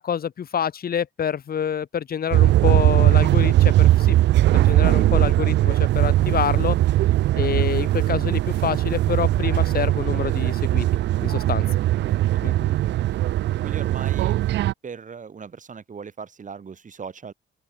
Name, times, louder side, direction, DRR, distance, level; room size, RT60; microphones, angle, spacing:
voice 1, 0.0-4.2 4.5-6.8 7.3-10.9 11.2-11.8 12.4-12.6, left 8 dB, 50° left, 1.6 m, -27 dB
sound 1, 2.3-14.7, right 14 dB, 65° right, 0.4 m, -19 dB
voice 2, 12.3-13.3 13.6-14.3 14.8-17.3, right 6 dB, 40° right, 3.3 m, -39 dB
open air
cardioid pair, 90°, 20 cm